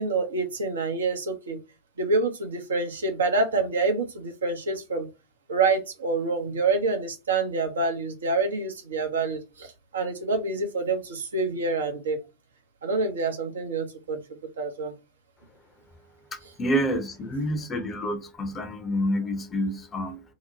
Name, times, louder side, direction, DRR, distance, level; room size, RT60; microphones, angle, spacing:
voice 1, 0.0-1.6 2.0-5.1 5.5-12.2 12.8-14.2 14.6-14.9, right 3 dB, 65° right, 0.7 m, -27 dB
voice 2, 16.6-20.2, equal, 20° left, 0.7 m, -28 dB
2.9 x 2.1 x 3.9 m
figure-of-eight pair, 90°, 0 cm